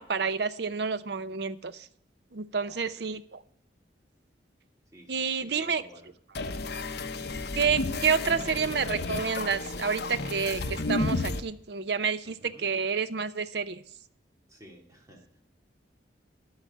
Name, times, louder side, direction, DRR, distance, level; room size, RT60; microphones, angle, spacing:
voice 1, 0.0-1.9 2.3-3.4 5.1-5.8 7.5-13.8, right 5 dB, 65° right, 14 dB, 0.6 m, -29 dB
voice 2, 5.4-6.1 12.2-12.6 14.5-15.4, equal, 15° right, 0 dB, 2.5 m, -53 dB
sound 1, 6.3-11.4, left 2 dB, 60° left, 0.8 m, -32 dB
12.0 x 4.9 x 8.0 m, 0.67 s
head